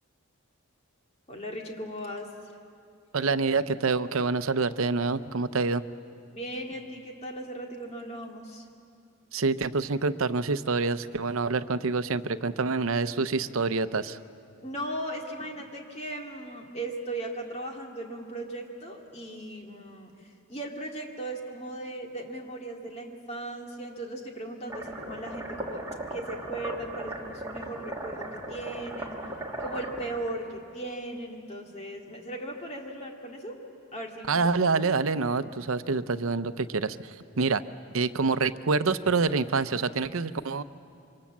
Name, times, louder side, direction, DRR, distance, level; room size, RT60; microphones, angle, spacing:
voice 1, 1.3-2.5 6.3-8.7 14.6-25.8 26.1-29.2 29.6-33.6 33.9-34.3, right 1 dB, 30° left, 1 dB, 2.2 m, -37 dB
voice 2, 3.1-5.8 9.3-14.2 34.3-37.6 37.9-40.6, right 4 dB, 75° right, 13 dB, 0.7 m, -27 dB
sound 1, 24.7-30.3, right 1 dB, 15° right, 2.4 m, -37 dB
26.5 x 24.0 x 7.3 m, 2.5 s
head